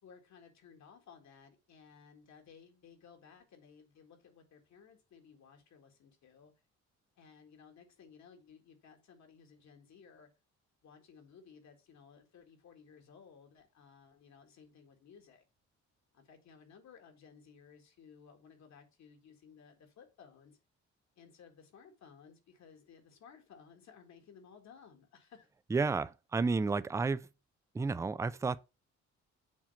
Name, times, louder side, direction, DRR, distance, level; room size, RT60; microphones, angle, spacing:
voice 1, 0.0-6.5 7.2-10.3 10.8-15.5 16.1-20.6 21.2-25.5, left 6 dB, 65° left, 1.8 m, -58 dB
voice 2, 25.7-27.3 27.7-28.6, right 4 dB, 10° right, 0.3 m, -31 dB
7.3 x 3.0 x 5.5 m
cardioid pair, 90°, 30 cm